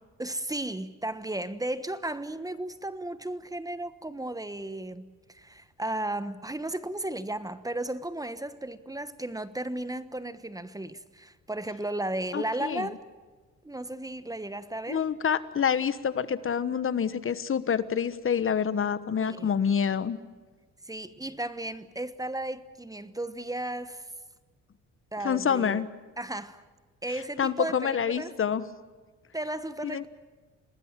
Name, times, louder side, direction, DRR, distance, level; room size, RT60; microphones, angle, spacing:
voice 1, 0.2-13.0 13.6-15.1 19.2-19.5 20.8-24.0 25.1-25.8 26.2-26.6 27.0-28.3 29.3-30.1, right 1 dB, 10° right, 1.2 m, -34 dB
voice 2, 12.3-12.9 14.9-20.2 25.2-25.9 27.1-28.7 29.8-30.1, left 7 dB, 45° left, 1.3 m, -27 dB
27.0 x 20.0 x 7.5 m
cardioid pair, 90°, 30 cm